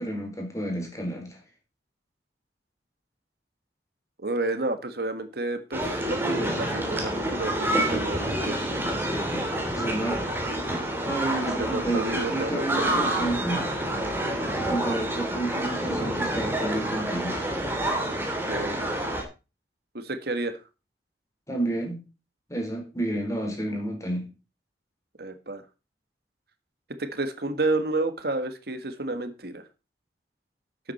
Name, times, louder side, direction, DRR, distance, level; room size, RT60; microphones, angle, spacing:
voice 1, 0.0-1.4 9.1-9.5 9.7-10.2 11.1-13.7 14.5-17.4 21.5-22.0 22.5-24.3, right 1 dB, 20° left, 2 dB, 4.1 m, -30 dB
voice 2, 4.2-8.6 9.9-10.0 11.5-13.0 18.4-19.0 19.9-20.6 25.2-25.6 27.0-29.6, right 2 dB, 60° right, 9 dB, 1.5 m, -31 dB
sound 1, 5.7-19.2, right 1 dB, 10° right, 3.1 m, -28 dB
12.5 x 8.5 x 4.2 m, 0.30 s
head